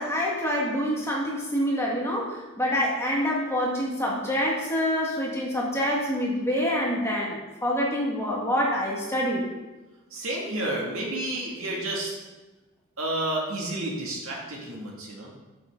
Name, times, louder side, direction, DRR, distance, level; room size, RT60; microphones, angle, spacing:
voice 1, 0.0-9.4, equal, 10° left, -3 dB, 1.6 m, -26 dB
voice 2, 10.1-12.1 13.0-15.3, right 1 dB, 70° right, -2 dB, 2.1 m, -30 dB
8.4 x 7.7 x 3.7 m, 1.2 s
head